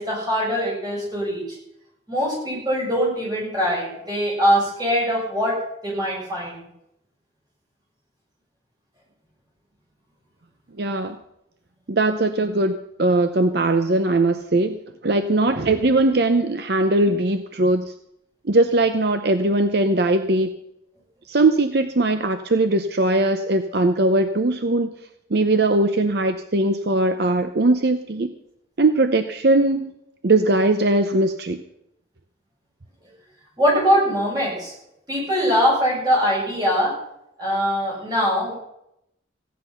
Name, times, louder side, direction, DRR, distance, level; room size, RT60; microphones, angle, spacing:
voice 1, 0.0-1.6 2.1-6.6 33.6-34.7 35.1-37.0 37.4-38.5, equal, 20° right, -4 dB, 7.5 m, -22 dB
voice 2, 10.8-11.2 11.9-17.9 18.4-20.5 21.3-24.9 25.3-28.3 28.8-30.0 30.2-31.6, right 2 dB, 60° right, 8 dB, 0.7 m, -20 dB
15.5 x 10.5 x 5.7 m, 0.80 s
head